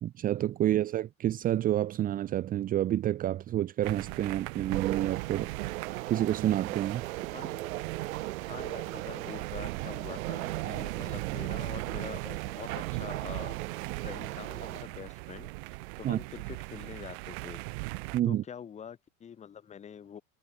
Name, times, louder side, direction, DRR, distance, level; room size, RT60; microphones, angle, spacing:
voice 1, 0.0-5.5 6.1-7.0 16.0-16.2 18.1-18.4, right 12 dB, 20° right, 1.3 m, -29 dB
sound 1, 3.8-18.2, right 29 dB, 50° right, 2.7 m, -39 dB
sound 2, 4.7-14.9, right 17 dB, 75° right, 4.8 m, -38 dB
voice 2, 7.3-7.7 8.5-13.6 14.0-17.6 18.2-20.2, left 8 dB, 15° left, 4.2 m, -45 dB
supercardioid pair, 180°, 41 cm